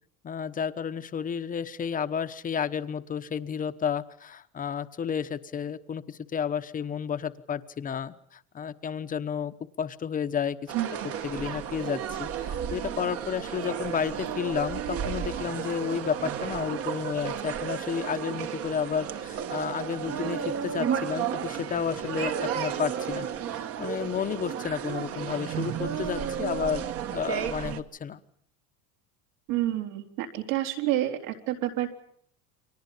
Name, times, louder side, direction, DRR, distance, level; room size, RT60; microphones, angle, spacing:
voice 1, 0.2-10.7 11.2-23.3 23.5-28.2, left 7 dB, 20° left, 10 dB, 1.1 m, -32 dB
sound 1, 10.7-27.8, right 8 dB, 35° right, 1.4 m, -33 dB
voice 2, 29.5-31.9, right 14 dB, 75° right, 4 dB, 4.2 m, -28 dB
30.0 x 24.0 x 5.7 m, 0.66 s
cardioid pair, 165°, 39 cm